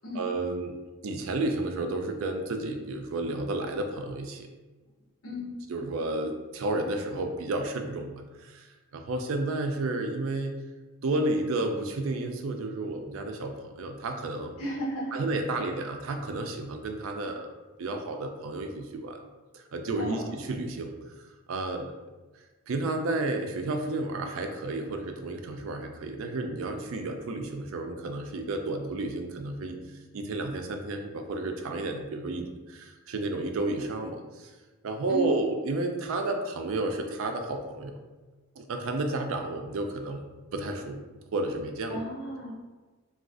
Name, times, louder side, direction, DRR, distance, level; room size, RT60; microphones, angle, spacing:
voice 1, 0.1-0.7 1.0-4.5 5.7-8.7 8.9-10.6 11.0-14.6 15.1-17.5 17.8-19.2 19.5-20.9 21.5-21.9 22.7-29.8 30.1-34.5 34.8-38.0 38.6-40.2 40.5-41.0 41.3-42.0, right 2 dB, 70° right, 5 dB, 0.4 m, -31 dB
voice 2, 14.6-15.2 20.0-20.2 35.1-35.3 41.9-42.5, right 1 dB, 85° left, -3 dB, 0.8 m, -33 dB
2.4 x 2.3 x 3.6 m, 1.3 s
head